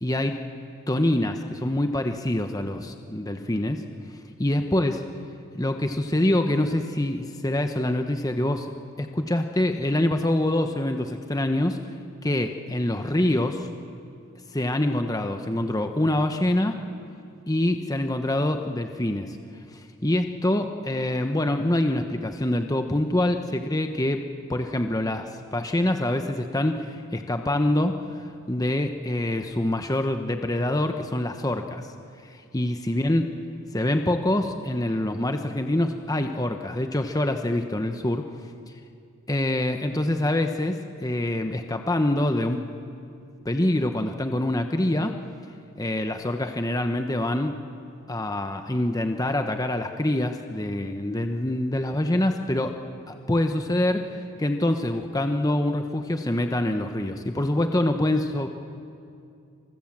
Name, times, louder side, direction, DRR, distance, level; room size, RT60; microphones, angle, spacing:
voice 1, 0.0-0.4 0.9-3.8 4.4-5.0 5.5-8.7 9.0-11.8 12.2-13.7 14.5-16.7 17.5-19.4 20.0-28.0 28.5-31.8 32.2-33.3 33.7-38.2 39.3-42.7 43.4-45.1 45.8-47.6 48.1-52.8 53.1-54.0 54.4-58.5, left 1 dB, 15° left, 6 dB, 1.0 m, -25 dB
27.5 x 26.0 x 7.5 m, 2.5 s
head